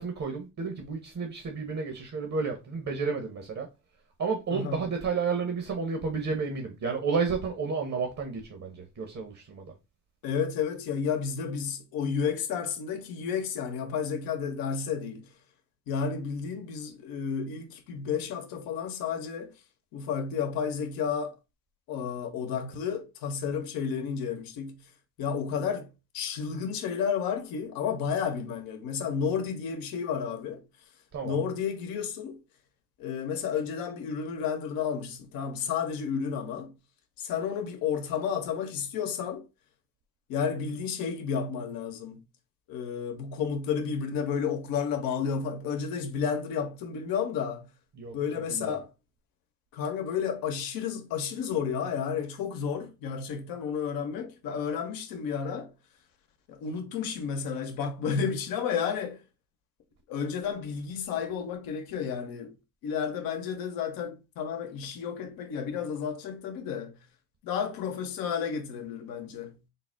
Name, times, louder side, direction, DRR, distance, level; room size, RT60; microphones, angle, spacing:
voice 1, 0.0-3.7 4.2-9.7 31.1-31.4 48.0-48.2 48.5-48.8, right 5 dB, 50° right, 1.1 m, -31 dB
voice 2, 4.5-4.8 10.2-15.3 15.9-19.5 19.9-21.4 21.9-24.8 25.2-30.6 31.2-32.4 33.0-36.7 37.2-39.4 40.3-42.2 42.7-47.7 48.1-48.9 49.7-55.7 56.5-59.2 60.1-62.5 62.8-67.0 67.4-69.6, left 7 dB, 80° left, 0.8 m, -31 dB
4.0 x 2.1 x 3.8 m
supercardioid pair, 60°, 35 cm